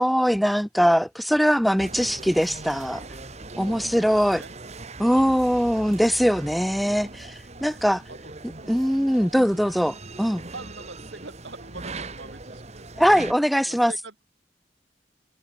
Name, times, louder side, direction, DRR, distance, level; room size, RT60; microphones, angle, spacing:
voice 1, 0.0-3.0 3.6-4.4 5.0-8.0 8.7-10.4 13.0-13.9, equal, ahead, 0.4 m, -21 dB
sound 1, 1.8-13.3, right 2 dB, 40° right, 2.4 m, -40 dB
voice 2, 3.6-4.5 5.0-5.5 5.7-5.9 7.6-7.7 8.1-8.9 9.6-9.8 10.5-13.1 13.6-14.2, right 3 dB, 85° right, 3.2 m, -45 dB
head